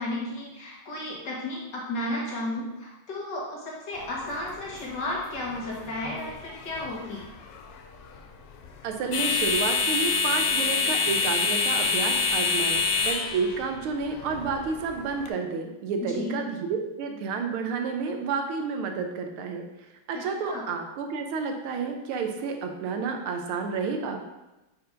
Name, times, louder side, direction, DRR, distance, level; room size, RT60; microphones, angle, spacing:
voice 1, 0.0-7.2 16.0-16.4 20.1-20.7, left 1 dB, 55° left, -3 dB, 2.0 m, -33 dB
sound 1, 4.0-15.3, left 4 dB, 80° left, 0.8 m, -28 dB
voice 2, 8.8-19.7 20.1-24.2, right 5 dB, 80° right, 4 dB, 1.6 m, -30 dB
5.3 x 4.4 x 5.1 m, 1.0 s
omnidirectional pair, 2.3 m